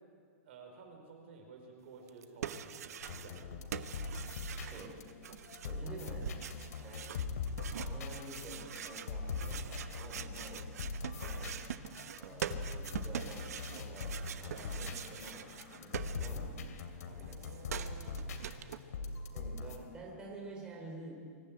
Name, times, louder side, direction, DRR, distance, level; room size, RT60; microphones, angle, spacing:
voice 1, 0.4-3.8 5.8-6.3 14.5-14.7 17.0-19.3, right 4 dB, 45° right, 3 dB, 4.7 m, -54 dB
sound 1, 2.1-3.5 3.7-16.7 16.9-18.8, right 9 dB, 80° right, 1.1 m, -44 dB
sound 2, 3.0-19.8, left 4 dB, 85° left, 2.8 m, -42 dB
voice 2, 5.6-6.3 6.7-7.2 7.8-10.7 11.1-11.6 12.2-14.1 14.4-16.5 17.2-17.5 19.3-21.1, right 2 dB, 10° right, -1 dB, 3.0 m, -49 dB
24.5 x 13.5 x 9.0 m, 2.1 s
supercardioid pair, 180°, 8 cm